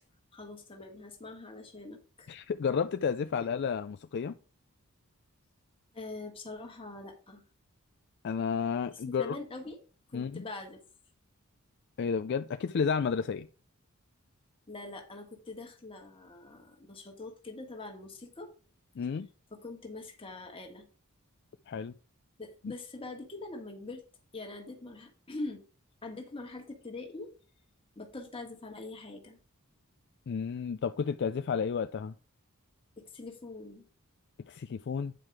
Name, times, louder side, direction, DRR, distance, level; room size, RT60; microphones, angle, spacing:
voice 1, 0.3-2.3 5.9-7.4 8.9-9.8 10.1-10.8 14.7-18.5 19.5-20.9 22.4-24.0 24.3-25.6 26.0-27.3 27.9-29.4 33.0-33.8, left 2 dB, 25° left, 1.5 m, -43 dB
voice 2, 2.3-4.3 8.2-9.4 10.1-10.4 12.0-13.5 19.0-19.3 21.7-21.9 22.6-22.7 30.3-32.1 34.5-35.1, left 6 dB, 50° left, 0.3 m, -31 dB
9.3 x 4.7 x 4.7 m
head